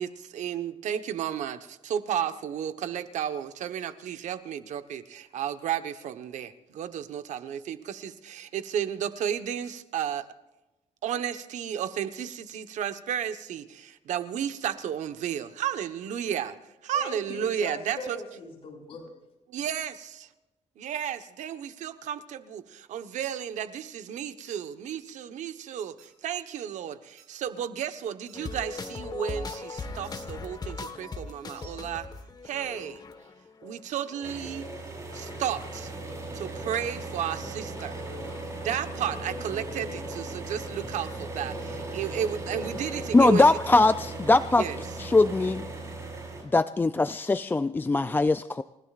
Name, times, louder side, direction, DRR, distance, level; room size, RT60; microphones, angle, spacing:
voice 1, 0.0-10.3 11.0-16.6 16.8-18.2 19.5-20.3 20.8-32.1 32.4-33.0 33.6-34.7 35.1-35.9 36.3-38.0 38.6-43.5 44.6-44.8, right 9 dB, 85° right, 10 dB, 1.2 m, -33 dB
voice 2, 16.9-19.2, left 2 dB, 50° left, 2 dB, 6.0 m, -40 dB
sound 1, 23.2-23.4 24.4-24.6 26.0-26.1 27.2-27.3 28.3-28.4 30.0-30.2 31.5-31.8 33.9-34.1, right 7 dB, 65° right, 3.9 m, -55 dB
sound 2, 28.3-44.1, left 3 dB, 35° left, 1.5 m, -42 dB
sound 3, 34.2-46.4, right 2 dB, 25° right, 6.6 m, -38 dB
voice 3, 43.1-44.6 45.0-45.6 46.5-48.6, left 2 dB, 15° left, 12 dB, 0.4 m, -21 dB
29.5 x 16.0 x 2.5 m, 1.0 s
cardioid pair, 125°, 12 cm